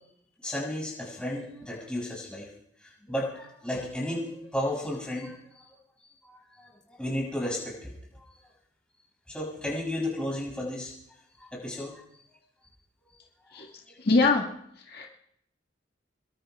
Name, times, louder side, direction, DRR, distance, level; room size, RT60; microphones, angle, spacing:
voice 1, 0.4-2.5 2.8-5.7 6.2-8.0 9.3-10.9 11.4-12.0 13.9-14.0 15.0-15.1, left 1 dB, 5° left, -3 dB, 7.0 m, -33 dB
voice 2, 14.0-14.5 14.9-15.1, left 3 dB, 55° left, -1 dB, 1.9 m, -23 dB
27.0 x 22.5 x 2.4 m, 0.72 s
head